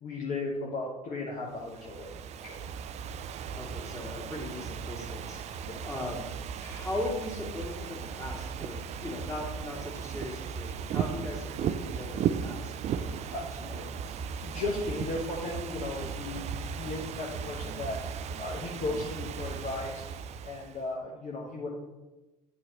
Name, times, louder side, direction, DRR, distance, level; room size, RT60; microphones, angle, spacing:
voice 1, 0.0-2.7 5.7-5.8 13.3-13.4 14.4-20.0 20.4-21.7, left 2 dB, 45° left, -3 dB, 1.2 m, -36 dB
Ocean / Fireworks, 1.5-20.8, right 7 dB, 35° right, 0.4 m, -36 dB
voice 2, 3.6-6.3 6.6-13.2 13.6-14.1, left 1 dB, 15° left, -3 dB, 2.2 m, -39 dB
8.0 x 6.1 x 3.0 m, 1.1 s
figure-of-eight pair, 60°, 19 cm